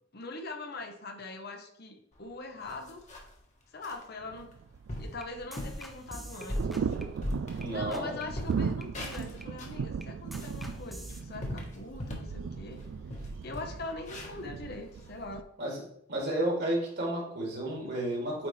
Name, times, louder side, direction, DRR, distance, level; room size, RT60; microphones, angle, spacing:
voice 1, 0.1-3.0 3.7-4.5 5.0-6.8 7.5-12.8 13.4-15.5, left 2 dB, 55° left, 5 dB, 0.9 m, -42 dB
sound 1, 2.2-2.3 2.6-3.4 3.8-4.0 4.5-4.6 4.9-5.2 5.6-5.9 6.3-8.0 8.3-9.8 10.2-12.4 12.7-12.8 13.1-15.3, left 1 dB, 40° left, 1.3 m, -39 dB
sound 2, 4.2-15.4, right 6 dB, 80° right, 0.3 m, -38 dB
sound 3, 4.7-7.7 7.9-8.2 8.5-11.2, right 1 dB, ahead, 0.6 m, -47 dB
voice 2, 7.6-8.3 15.6-15.8 16.1-18.5, right 1 dB, 60° right, -3 dB, 2.5 m, -32 dB
8.8 x 4.1 x 3.2 m, 0.70 s
head